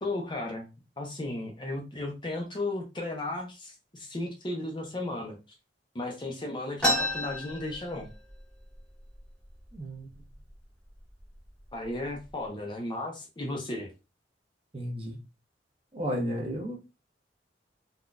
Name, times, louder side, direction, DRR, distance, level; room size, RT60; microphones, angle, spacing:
voice 1, 0.0-0.7 1.0-5.4 5.9-8.1 11.7-13.9, left 2 dB, 25° left, 0.5 m, -35 dB
sound 1, 6.8-8.4 8.8-8.9 9.1-9.7 10.3-10.5 11.2-11.4 11.8-12.3, left 1 dB, 5° left, 0.9 m, -30 dB
voice 2, 9.7-10.1 14.7-15.2 15.9-16.8, equal, 30° right, 1.0 m, -33 dB
3.7 x 2.2 x 2.4 m
head